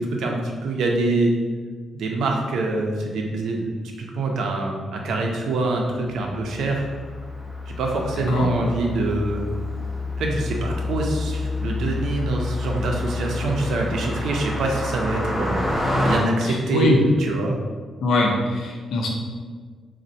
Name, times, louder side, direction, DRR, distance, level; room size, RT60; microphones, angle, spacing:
voice 1, 0.0-1.3 1.9-6.8 7.8-9.4 10.2-17.6, right 2 dB, 85° right, 1 dB, 0.5 m, -25 dB
Car passing by, 6.1-16.2, left 2 dB, 10° left, 0.5 m, -28 dB
voice 2, 16.4-17.0 18.0-19.1, left 2 dB, 85° left, 0 dB, 0.5 m, -22 dB
4.1 x 2.1 x 2.6 m, 1.5 s
wide cardioid pair, 170°, 0 cm